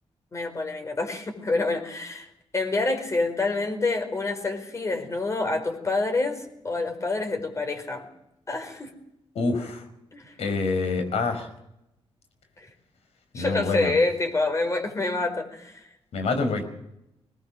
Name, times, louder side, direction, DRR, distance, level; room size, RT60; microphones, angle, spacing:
voice 1, 0.3-2.3 2.5-8.0 8.5-8.9 10.1-10.3 12.6-12.7 13.3-15.8, left 3 dB, 30° left, 5 dB, 4.7 m, -27 dB
voice 2, 9.4-9.9 10.4-11.5 13.3-13.9 16.1-16.6, left 3 dB, 80° left, 7 dB, 5.3 m, -26 dB
22.0 x 19.0 x 6.5 m, 0.83 s
wide cardioid pair, 130°, 11 cm